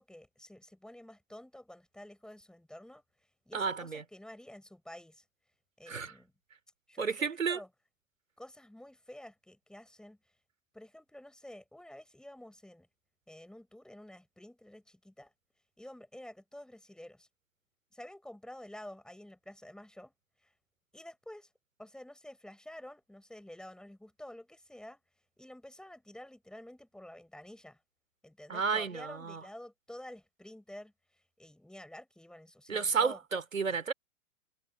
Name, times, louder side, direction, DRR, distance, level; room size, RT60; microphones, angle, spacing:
voice 1, 0.0-3.0 3.5-5.2 5.8-6.3 6.9-7.7 8.4-10.2 10.7-12.9 13.3-15.3 15.8-17.3 17.9-20.1 20.4-20.5 20.9-21.5 21.8-25.0 25.4-27.8 28.2-30.9 31.4-33.2 33.7-33.8, left 1 dB, ahead, 6.5 m, -50 dB
voice 2, 3.5-4.0 5.9-6.1 7.0-7.6 28.5-29.4 32.7-33.9, right 5 dB, 75° right, 4.9 m, -32 dB
figure-of-eight pair, 115°, 40 cm